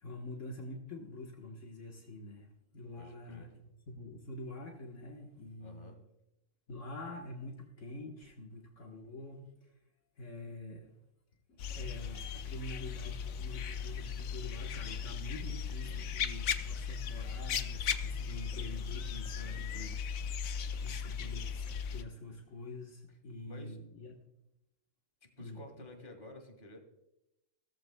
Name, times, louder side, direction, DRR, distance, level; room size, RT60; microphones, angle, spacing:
voice 1, 0.0-3.5 3.9-5.9 6.7-9.7 10.2-10.9 11.5-20.0 20.6-24.1 25.4-25.9, left 1 dB, 65° left, 0 dB, 1.7 m, -46 dB
voice 2, 3.0-3.5 5.6-6.0 15.8-16.1 19.4-20.4 23.4-23.8 25.2-26.8, left 2 dB, 40° left, 4 dB, 2.1 m, -52 dB
sound 1, 11.6-22.0, left 7 dB, 85° left, 1.2 m, -37 dB
16.5 x 14.0 x 2.3 m, 0.87 s
omnidirectional pair, 1.4 m